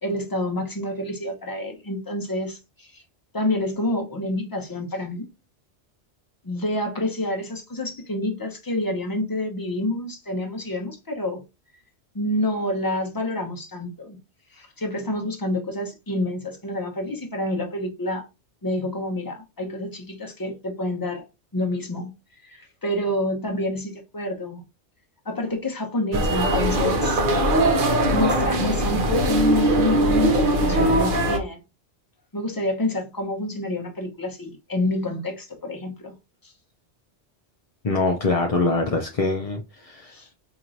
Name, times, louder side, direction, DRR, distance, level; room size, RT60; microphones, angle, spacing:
voice 1, 0.0-3.0 3.3-5.3 6.4-11.4 12.1-14.2 14.5-18.2 18.6-21.2 21.5-22.1 22.4-24.6 25.2-27.2 28.1-31.6 32.3-36.2 36.4-36.5 40.1-40.3, left 1 dB, 20° left, 0.8 m, -28 dB
sound 1, 26.1-31.4, right 1 dB, 50° right, 0.9 m, -21 dB
voice 2, 37.8-40.2, left 3 dB, 50° left, 0.4 m, -24 dB
4.4 x 3.0 x 2.5 m
omnidirectional pair, 1.2 m